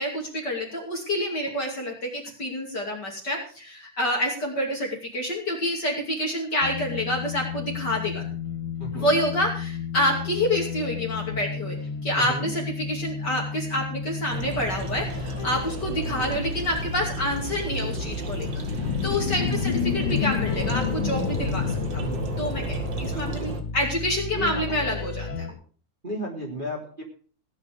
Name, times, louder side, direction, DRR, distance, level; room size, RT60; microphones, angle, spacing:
voice 1, 0.0-8.3 8.9-11.8 12.0-18.6 19.0-22.0 22.4-25.5, left 1 dB, 35° left, -1 dB, 3.1 m, -28 dB
sound 1, 6.6-25.5, left 6 dB, 55° left, 1.7 m, -34 dB
voice 2, 8.8-9.1 12.2-12.5 16.0-16.4 19.4-19.7 22.0-22.3 23.1-23.5 24.3-24.7 26.0-27.0, right 1 dB, 15° right, -1 dB, 3.1 m, -34 dB
sound 2, 14.3-23.6, right 4 dB, 45° right, 1.8 m, -34 dB
sound 3, 18.3-23.2, left 8 dB, 80° left, 3.0 m, -29 dB
17.0 x 9.7 x 5.2 m, 0.41 s
omnidirectional pair, 3.5 m